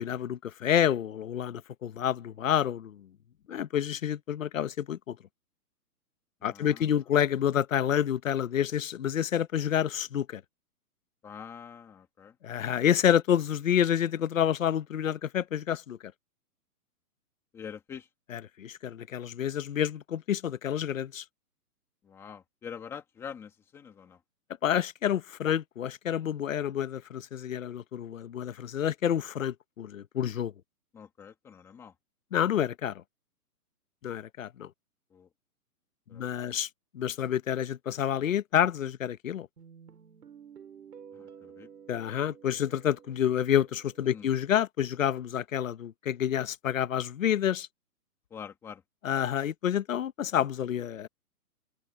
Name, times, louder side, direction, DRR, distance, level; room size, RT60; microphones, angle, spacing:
voice 1, 0.0-3.1 3.5-5.2 6.4-10.4 12.4-16.1 18.6-21.2 24.6-30.5 32.3-33.0 34.0-34.7 36.1-36.7 36.9-39.5 41.9-47.7 49.0-51.1, left 9 dB, 55° left, 1.1 m, -28 dB
voice 2, 6.4-7.0 11.2-12.4 17.5-18.1 22.0-24.2 30.9-31.9 35.1-35.3 36.1-36.5 41.1-41.7 44.1-44.3 48.3-48.8, left 7 dB, 5° left, 1.7 m, -45 dB
Guitar, 39.6-44.6, right 7 dB, 85° right, 6.8 m, -52 dB
hypercardioid pair, 180°, 46 cm